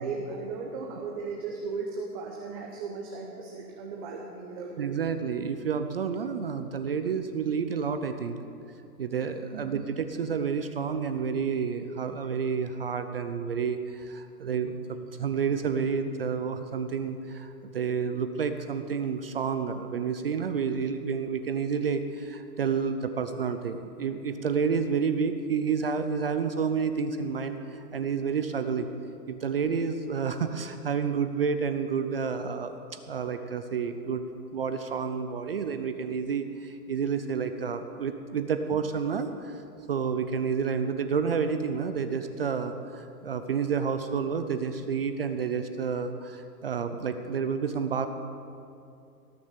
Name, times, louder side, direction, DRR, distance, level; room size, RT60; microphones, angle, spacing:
voice 1, 0.0-5.0 9.5-9.7, right 4 dB, 25° right, 0 dB, 0.8 m, -36 dB
voice 2, 4.8-8.4 9.0-28.9 29.3-34.2 34.5-39.6 39.9-48.1, right 6 dB, 40° right, 8 dB, 0.5 m, -30 dB
18.0 x 6.8 x 6.7 m, 2.6 s
hypercardioid pair, 165°, 48 cm